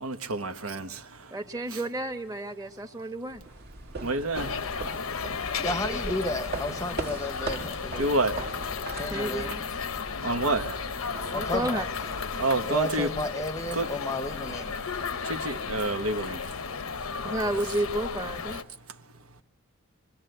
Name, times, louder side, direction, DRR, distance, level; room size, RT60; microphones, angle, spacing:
voice 1, 0.0-1.0 1.7-1.8 4.0-4.5 8.0-8.4 10.2-10.7 12.4-13.1 13.7-13.9 15.3-16.4, right 2 dB, 80° right, 1.1 m, -28 dB
voice 2, 1.3-3.4 5.8-6.0 9.1-9.7 11.3-11.9 17.2-18.6, right 1 dB, 15° right, 1.2 m, -31 dB
sound 1, 3.3-13.0, right 3 dB, 50° right, 1.6 m, -40 dB
sound 2, 4.3-18.6, left 5 dB, 80° left, 0.8 m, -34 dB
voice 3, 5.6-8.2 8.9-9.6 11.3-11.9 12.6-14.8 17.2-17.7, left 1 dB, 15° left, 0.8 m, -33 dB
25.0 x 22.5 x 7.8 m
head